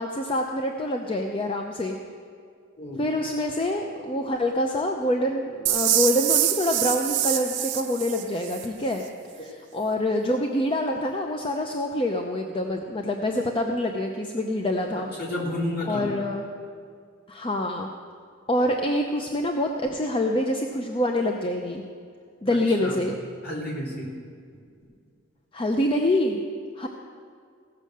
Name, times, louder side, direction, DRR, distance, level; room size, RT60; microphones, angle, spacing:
voice 1, 0.0-2.0 3.0-9.0 9.4-15.1 15.8-16.4 17.3-17.9 18.5-21.8 22.4-23.2 25.5-26.4 26.8-26.9, left 1 dB, 25° left, 3 dB, 0.6 m, -26 dB
sound 1, 5.7-8.7, right 12 dB, 60° right, 0.7 m, -25 dB
voice 2, 15.2-16.1 22.8-23.0 23.4-24.1, left 1 dB, 50° left, -5 dB, 3.3 m, -30 dB
16.5 x 6.4 x 6.6 m, 2.2 s
head